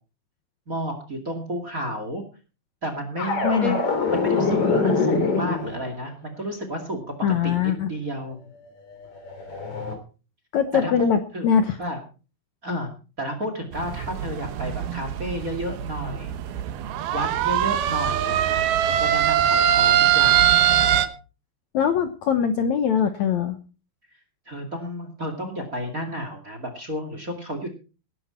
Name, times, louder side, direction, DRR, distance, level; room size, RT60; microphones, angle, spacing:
voice 1, 0.7-2.2 2.8-3.8 4.1-7.1 7.4-8.4 10.7-11.5 11.8-12.0 12.6-12.9 13.2-16.3 17.1-20.5 24.5-27.7, equal, 25° right, 7 dB, 2.0 m, -31 dB
sound 1, 3.2-5.9 8.7-9.9, left 4 dB, 40° left, 3.8 m, -24 dB
voice 2, 3.4-3.8 7.2-7.9 10.5-11.8 21.7-23.6, left 7 dB, 65° left, 8 dB, 1.8 m, -22 dB
sound 2, 13.7-21.1, right 11 dB, 75° right, 3.0 m, -22 dB
19.0 x 11.0 x 4.4 m, 0.35 s
omnidirectional pair, 4.6 m